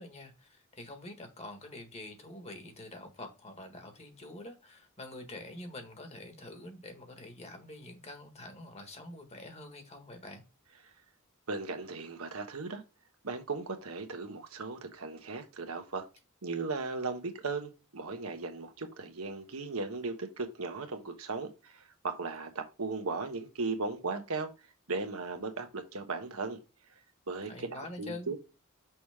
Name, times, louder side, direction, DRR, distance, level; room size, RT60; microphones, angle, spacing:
voice 1, 0.0-10.4 27.5-28.3, left 2 dB, 30° left, 1.6 m, -46 dB
voice 2, 11.5-12.8 13.2-16.0 16.4-24.5 24.9-26.6 27.3-28.4, right 3 dB, 85° right, 1.2 m, -37 dB
6.1 x 4.9 x 3.5 m
head